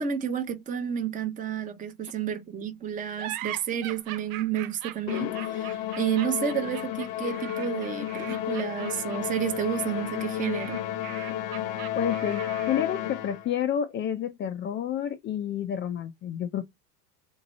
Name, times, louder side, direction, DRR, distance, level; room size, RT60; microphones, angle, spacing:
voice 1, 0.0-10.8, right 8 dB, 15° right, 0.7 m, -30 dB
sound 1, 3.2-13.0, right 14 dB, 60° right, 0.7 m, -41 dB
Musical instrument, 5.1-13.6, left 12 dB, 45° left, 0.9 m, -32 dB
voice 2, 11.9-16.7, left 9 dB, 25° left, 0.4 m, -30 dB
3.6 x 2.9 x 4.0 m
supercardioid pair, 125°, 47 cm